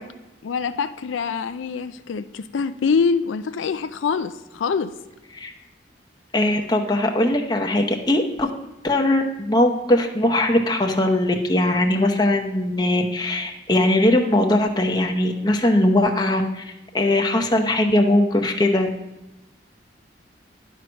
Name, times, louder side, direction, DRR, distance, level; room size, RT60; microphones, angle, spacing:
voice 1, 0.4-4.9, left 5 dB, 85° left, 11 dB, 0.4 m, -24 dB
voice 2, 6.3-8.5 8.8-18.9, left 1 dB, 20° left, 2 dB, 0.8 m, -20 dB
11.0 x 4.6 x 6.2 m, 1.0 s
head